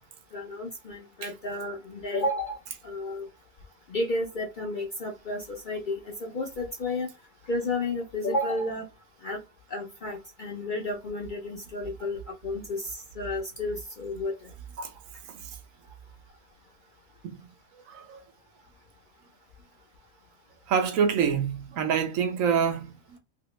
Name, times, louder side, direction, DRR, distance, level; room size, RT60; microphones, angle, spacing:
voice 1, 0.3-2.6 2.8-3.3 3.9-7.1 7.5-8.9 9.2-9.4 9.7-14.3, left 2 dB, 55° left, 0.6 m, -32 dB
voice 2, 17.7-18.2 20.7-23.2, right 7 dB, 75° right, 1.0 m, -27 dB
2.9 x 2.8 x 3.1 m
omnidirectional pair, 1.5 m